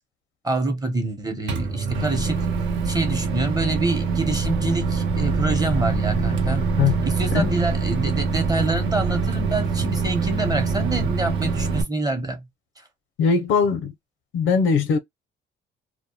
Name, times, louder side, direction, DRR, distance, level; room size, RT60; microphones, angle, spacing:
voice 1, 0.4-2.5 2.8-6.7 7.0-12.4, right 2 dB, 20° right, 0.8 m, -26 dB
Microwave oven, 1.5-11.8, right 4 dB, 65° right, 0.8 m, -24 dB
voice 2, 13.2-13.9 14.3-15.0, left 5 dB, 85° left, 0.6 m, -20 dB
2.2 x 2.1 x 2.8 m
cardioid pair, 90°, 20 cm